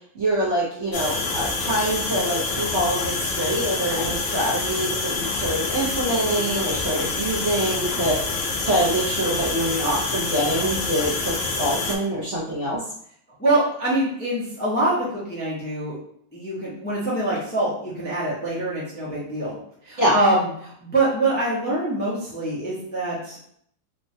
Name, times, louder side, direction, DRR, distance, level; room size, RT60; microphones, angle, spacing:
voice 1, 0.1-12.8 20.0-20.2, right 1 dB, 60° right, -6 dB, 0.8 m, -25 dB
sound 1, 0.9-12.0, left 3 dB, 80° left, 0.6 m, -27 dB
voice 2, 13.4-16.0 16.3-19.6 19.8-23.5, right 2 dB, 15° left, -8 dB, 0.3 m, -24 dB
3.3 x 2.1 x 2.6 m, 0.66 s
omnidirectional pair, 1.8 m